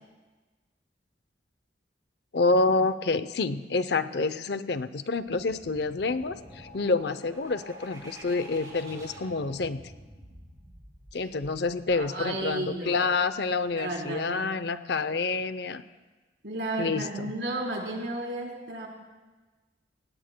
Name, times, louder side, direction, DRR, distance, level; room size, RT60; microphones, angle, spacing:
voice 1, 2.3-9.8 11.1-15.8 16.8-17.3, left 3 dB, 65° left, 12 dB, 0.6 m, -28 dB
sound 1, 5.2-12.8, equal, 20° right, 4.9 m, -48 dB
voice 2, 11.9-13.0 13.8-14.5 16.4-18.9, right 2 dB, 75° right, -2 dB, 3.9 m, -33 dB
26.0 x 19.0 x 2.2 m, 1.2 s
head